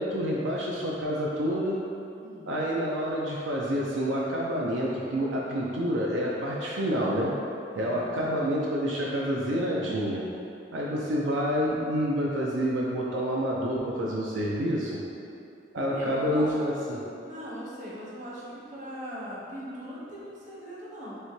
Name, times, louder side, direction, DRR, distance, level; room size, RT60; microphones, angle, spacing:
voice 1, 0.0-1.8 2.5-7.3 7.8-10.2 10.7-15.0 15.7-17.0, equal, 85° right, -4 dB, 0.5 m, -28 dB
voice 2, 7.7-8.2 15.8-16.7 17.2-21.2, equal, 45° right, -7 dB, 0.9 m, -40 dB
6.5 x 2.2 x 3.1 m, 2.6 s
head